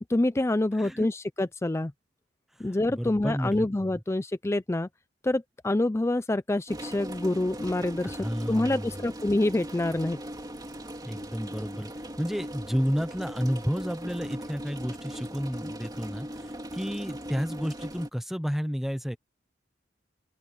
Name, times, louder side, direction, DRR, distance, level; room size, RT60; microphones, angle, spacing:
voice 1, 0.1-1.9 2.6-4.9 5.2-8.2 8.5-10.2, left 1 dB, 15° left, 0.4 m, -26 dB
voice 2, 0.8-1.1 2.6-3.9 8.0-9.0 11.0-11.9 12.2-19.2, equal, ahead, 0.8 m, -31 dB
sound 1, 6.7-18.1, equal, 20° right, 2.8 m, -39 dB
open air
head